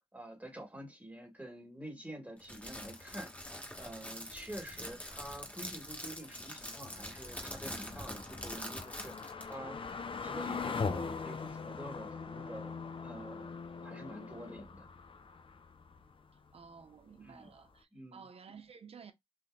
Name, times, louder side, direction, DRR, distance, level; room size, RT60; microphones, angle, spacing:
voice 1, 0.1-12.7 13.0-13.5 13.8-14.9 17.2-17.5 17.9-18.2, right 1 dB, 15° right, 1.6 m, -47 dB
Crackle, 2.4-9.5, equal, 15° left, 1.3 m, -45 dB
sound 1, 2.7-16.9 17.2-17.3 17.7-17.8, left 5 dB, 60° left, 0.5 m, -43 dB
voice 2, 16.5-19.1, right 6 dB, 75° right, 0.6 m, -53 dB
3.6 x 2.6 x 2.3 m
cardioid pair, 55°, 10 cm